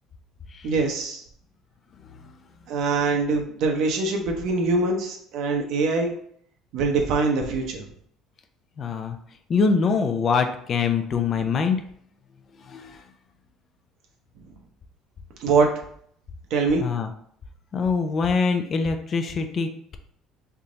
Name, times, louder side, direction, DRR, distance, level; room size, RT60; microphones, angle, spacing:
voice 1, 0.6-1.2 2.7-6.1 6.7-7.8 15.4-15.7 16.5-16.8, right 4 dB, 65° right, 2 dB, 0.9 m, -23 dB
voice 2, 8.8-9.2 9.5-11.8 12.6-13.0 16.8-17.1 17.7-20.0, left 5 dB, 40° left, 7 dB, 0.5 m, -24 dB
3.5 x 2.8 x 3.8 m, 0.64 s
cardioid pair, 115°, 0 cm